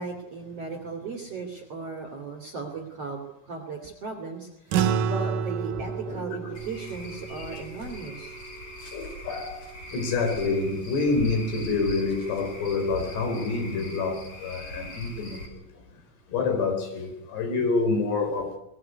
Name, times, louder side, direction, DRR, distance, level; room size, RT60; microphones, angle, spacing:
voice 1, 0.0-8.4, right 4 dB, 40° right, 3.2 m, -37 dB
sound 1, 4.7-9.4, right 7 dB, 65° right, 2.5 m, -30 dB
Cricket / Frog, 6.5-15.5, left 1 dB, 35° left, 5.7 m, -42 dB
voice 2, 8.9-9.6 9.9-15.6 16.3-18.5, left 3 dB, 85° left, 6.4 m, -27 dB
22.0 x 19.5 x 9.4 m
omnidirectional pair, 4.7 m